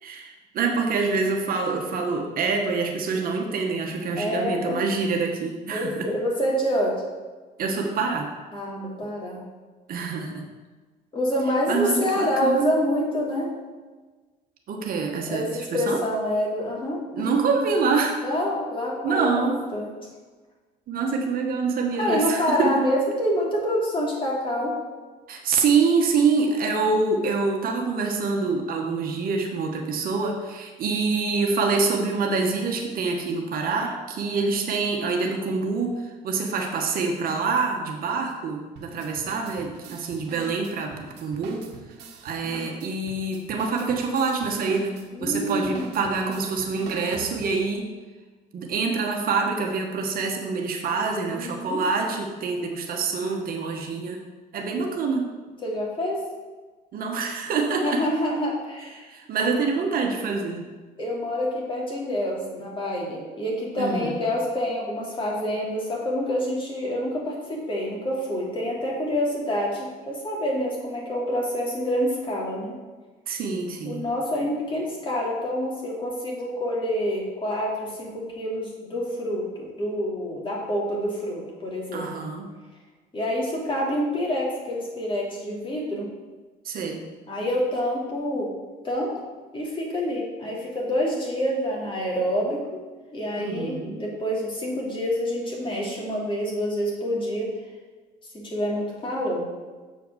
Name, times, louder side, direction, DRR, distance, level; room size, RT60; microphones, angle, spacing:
voice 1, 0.0-6.1 7.6-8.3 9.9-10.5 11.7-12.7 14.7-16.0 17.1-18.2 19.0-19.6 20.9-22.7 25.3-41.6 42.2-47.9 48.5-54.2 54.5-55.3 56.9-58.0 59.0-60.7 63.8-64.2 73.3-74.1 81.9-82.5 86.6-87.0 93.4-94.0, right 4 dB, 60° right, 2 dB, 1.2 m, -26 dB
voice 2, 4.2-4.8 5.7-6.9 8.5-9.4 11.1-13.5 15.3-17.6 18.2-19.9 22.0-24.7 45.1-45.9 51.3-51.8 55.6-56.2 57.8-59.0 59.4-59.5 61.0-72.7 73.8-82.1 83.1-86.1 87.3-88.5 88.8-89.1 89.5-92.8 93.1-97.5 98.5-99.5, equal, 30° left, -3 dB, 2.8 m, -27 dB
sound 1, 38.8-47.7, right 4 dB, 80° right, 1.1 m, -43 dB
7.3 x 4.7 x 6.3 m, 1.3 s
cardioid pair, 100°, 17 cm